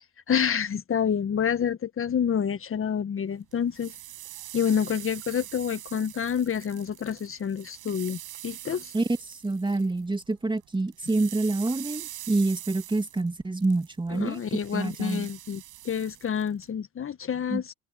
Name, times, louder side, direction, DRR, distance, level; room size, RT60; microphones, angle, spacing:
voice 1, 0.0-3.9 4.5-8.9 14.1-17.7, left 8 dB, 35° left, 1.7 m, -28 dB
sound 1, 3.5-10.3 10.6-16.7, right 14 dB, 60° right, 7.6 m, -44 dB
voice 2, 8.9-15.3 17.5-17.6, right 2 dB, 15° right, 2.6 m, -27 dB
hypercardioid pair, 65°, 35 cm